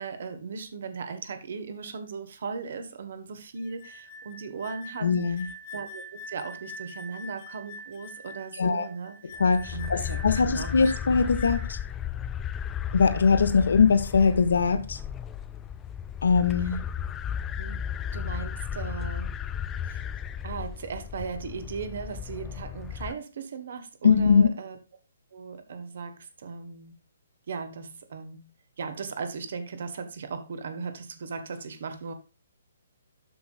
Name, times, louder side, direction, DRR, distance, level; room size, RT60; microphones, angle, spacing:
voice 1, 0.0-5.3 5.7-9.4 9.7-10.9 16.6-16.8 17.5-17.8 18.1-19.4 19.8-20.0 20.4-24.8 25.3-26.9 27.5-28.5 28.8-32.1, right 5 dB, 55° right, 1.4 m, -37 dB
sound 1, 3.6-11.9, left 1 dB, 35° left, 1.3 m, -44 dB
voice 2, 5.0-5.4 8.6-8.9 9.4-11.8 12.9-15.0 16.2-16.8 24.0-24.5, left 5 dB, 65° left, 1.2 m, -21 dB
sound 2, 9.4-23.1, left 8 dB, 15° left, 0.4 m, -34 dB
12.5 x 5.4 x 2.5 m
figure-of-eight pair, 130°, 0 cm